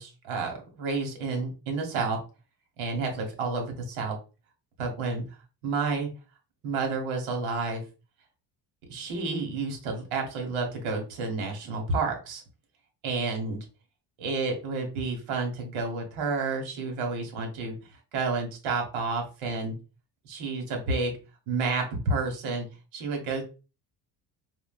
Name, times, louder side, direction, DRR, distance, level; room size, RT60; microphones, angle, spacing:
voice 1, 0.0-2.2 2.8-4.2 4.8-5.2 5.6-6.1 6.6-7.8 8.9-12.4 13.0-13.6 14.2-17.8 18.1-19.8 20.2-21.1 21.5-22.7 22.9-23.4, right 3 dB, 75° right, 3 dB, 1.3 m, -30 dB
4.3 x 2.1 x 2.4 m, 0.33 s
supercardioid pair, 75°, 49 cm